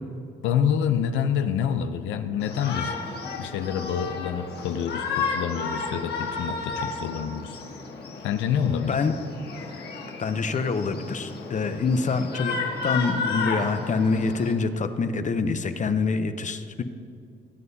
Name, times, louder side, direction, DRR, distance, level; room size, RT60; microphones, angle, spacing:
voice 1, 0.4-2.9 3.4-7.6 8.2-9.0, left 8 dB, 85° left, 9 dB, 0.5 m, -27 dB
Shout, 2.4-14.5, left 4 dB, 60° left, 1.6 m, -32 dB
voice 2, 8.6-9.1 10.2-12.6 12.8-16.8, left 4 dB, 40° left, 9 dB, 0.7 m, -26 dB
18.0 x 7.7 x 2.8 m, 2.4 s
cardioid pair, 70°, 19 cm